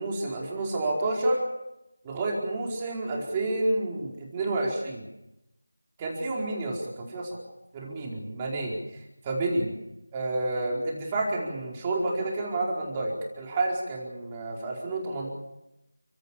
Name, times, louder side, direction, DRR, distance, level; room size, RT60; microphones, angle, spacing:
voice 1, 0.0-1.4 2.0-5.0 6.0-7.3 7.7-8.7 9.2-9.7 10.1-15.3, right 2 dB, 15° right, -2 dB, 4.6 m, -29 dB
30.0 x 17.0 x 7.4 m, 0.90 s
figure-of-eight pair, 170°, 0 cm